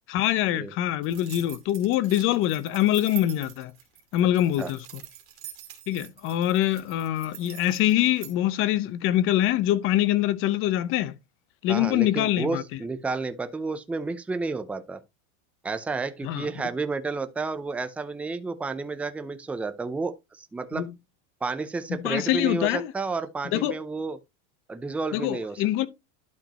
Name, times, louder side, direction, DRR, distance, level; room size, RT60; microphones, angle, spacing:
voice 1, 0.1-3.7 4.1-4.8 5.9-11.1 11.6-12.8 16.2-16.5 20.7-20.9 21.9-22.9 23.5-23.8 25.1-25.9, left 13 dB, 40° left, 0.9 m, -24 dB
sound 1, 1.0-8.3, right 13 dB, 40° right, 2.3 m, -44 dB
voice 2, 11.7-15.0 15.6-20.9 21.4-24.2 24.7-25.6, right 3 dB, 5° right, 0.5 m, -31 dB
12.0 x 5.1 x 3.0 m
supercardioid pair, 155°, 33 cm